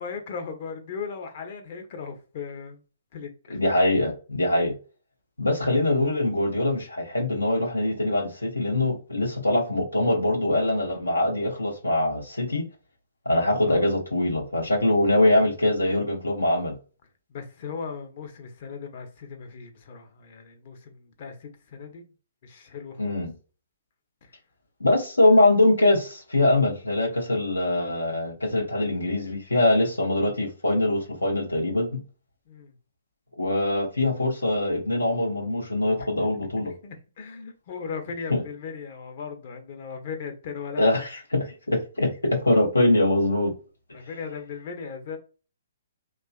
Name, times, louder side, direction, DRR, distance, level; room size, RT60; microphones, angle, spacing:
voice 1, 0.0-2.8 3.1-3.6 13.6-13.9 17.3-22.1 22.4-23.2 32.5-32.7 36.3-40.8 43.9-45.2, left 5 dB, 45° left, 0.6 m, -37 dB
voice 2, 3.5-4.7 5.4-12.6 13.3-16.8 23.0-23.3 24.8-32.0 33.4-36.7 38.3-38.4 40.8-43.5, left 1 dB, 85° left, 0.6 m, -23 dB
2.8 x 2.4 x 2.2 m
figure-of-eight pair, 130°, 0 cm